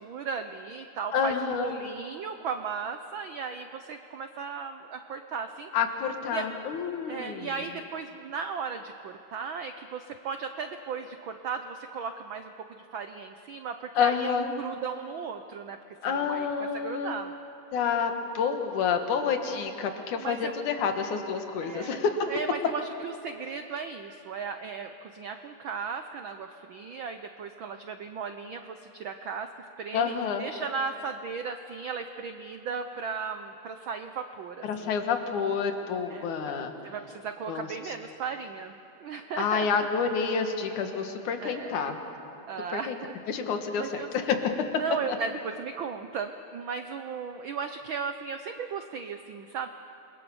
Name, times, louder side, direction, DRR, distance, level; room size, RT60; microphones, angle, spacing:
voice 1, 0.0-5.7 6.3-6.5 7.1-17.3 20.2-20.6 21.6-22.0 22.3-29.5 29.8-34.9 36.1-36.5 36.8-39.9 41.4-41.8 42.5-43.1 43.8-44.1 44.8-49.7, right 5 dB, 85° right, 7 dB, 1.0 m, -36 dB
voice 2, 1.1-1.7 5.7-7.5 14.0-14.5 16.0-17.1 17.7-22.3 29.9-30.4 34.6-36.7 37.5-37.9 39.4-42.0 42.7-43.0 43.3-44.7 45.1-45.2, left 6 dB, 85° left, 5 dB, 3.0 m, -28 dB
29.0 x 22.0 x 7.1 m, 3.0 s
omnidirectional pair, 3.4 m